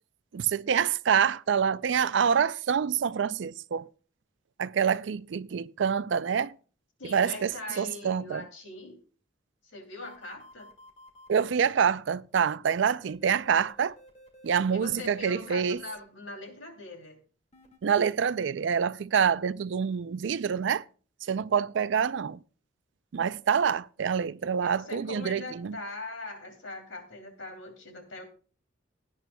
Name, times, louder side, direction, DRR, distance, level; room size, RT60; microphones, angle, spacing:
voice 1, 0.3-3.8 4.6-6.5 7.0-7.5 7.8-8.4 11.3-14.0 14.4-15.8 17.8-20.8 21.3-22.4 23.1-25.8, right 7 dB, 65° right, 0.4 m, -26 dB
voice 2, 7.0-9.0 9.6-10.7 14.7-17.2 24.6-28.2, left 2 dB, 80° left, 2.8 m, -41 dB
sound 1, 10.0-11.5 13.0-16.0 17.5-17.8, equal, 35° left, 2.0 m, -53 dB
17.5 x 9.7 x 2.2 m
head